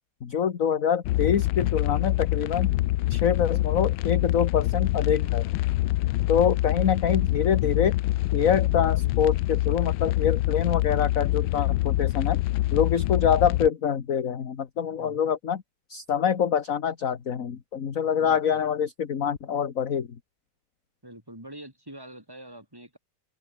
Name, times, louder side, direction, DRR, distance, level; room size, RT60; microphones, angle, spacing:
voice 1, 0.2-2.7 3.1-5.4 6.3-7.9 8.3-12.4 12.7-15.6 15.9-20.1, left 8 dB, 45° left, 1.6 m, -25 dB
sound 1, 1.0-13.7, left 17 dB, 85° left, 1.4 m, -25 dB
voice 2, 15.0-15.3 18.2-18.6 21.0-23.0, right 1 dB, 10° right, 6.4 m, -45 dB
open air
omnidirectional pair, 2.2 m